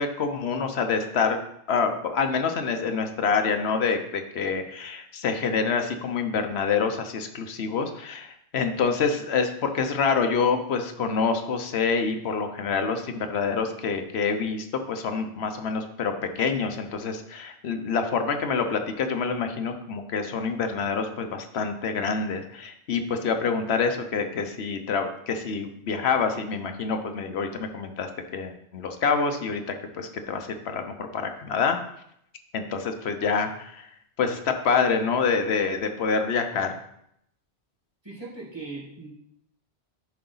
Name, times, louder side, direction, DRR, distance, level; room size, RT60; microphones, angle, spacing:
voice 1, 0.0-1.4 1.7-31.8 32.5-33.9 34.2-36.7, left 5 dB, 70° left, 6 dB, 1.1 m, -27 dB
voice 2, 38.0-39.1, right 3 dB, 20° right, -5 dB, 2.0 m, -39 dB
10.0 x 3.8 x 4.0 m, 0.74 s
omnidirectional pair, 1.2 m